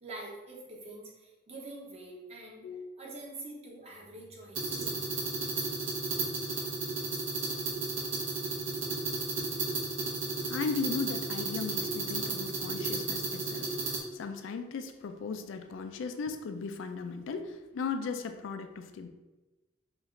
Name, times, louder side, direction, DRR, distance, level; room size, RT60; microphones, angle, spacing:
voice 1, 0.0-2.7 3.0-5.0, right 2 dB, 35° right, -3 dB, 0.9 m, -45 dB
sound 1, 4.5-14.0, right 3 dB, 75° right, 0.9 m, -33 dB
voice 2, 10.5-19.1, left 5 dB, 75° left, 7 dB, 0.3 m, -37 dB
4.6 x 2.4 x 3.1 m, 1.1 s
head